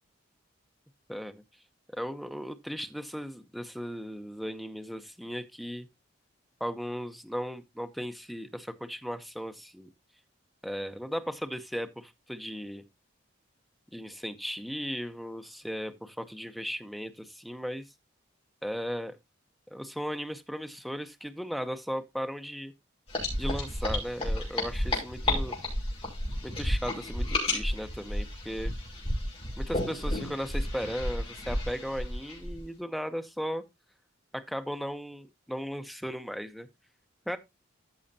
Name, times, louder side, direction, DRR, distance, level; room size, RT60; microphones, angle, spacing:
voice 1, 1.1-1.4 1.9-5.9 6.6-9.9 10.6-12.8 13.9-17.8 18.6-19.2 19.7-22.7 23.4-25.6 26.4-28.7 29.6-33.6 34.3-36.7 37.3-37.4, equal, ahead, 0.7 m, -36 dB
sound 1, 23.1-32.6, left 1 dB, 30° left, 5.3 m, -32 dB
14.0 x 6.3 x 2.7 m
head